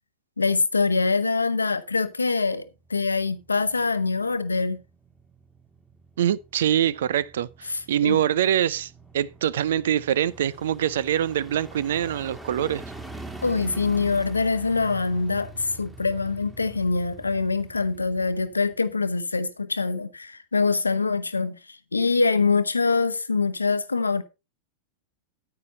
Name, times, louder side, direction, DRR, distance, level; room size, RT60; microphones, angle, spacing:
voice 1, 0.4-2.6 2.9-4.8 7.7-8.2 13.4-24.2, left 4 dB, 80° left, 0.9 m, -24 dB
sound 1, 2.7-19.1 19.5-19.6, right 3 dB, 5° right, 2.0 m, -45 dB
voice 2, 6.2-12.8, right 10 dB, 60° right, 0.5 m, -24 dB
9.6 x 9.0 x 4.1 m
figure-of-eight pair, 90°, 0 cm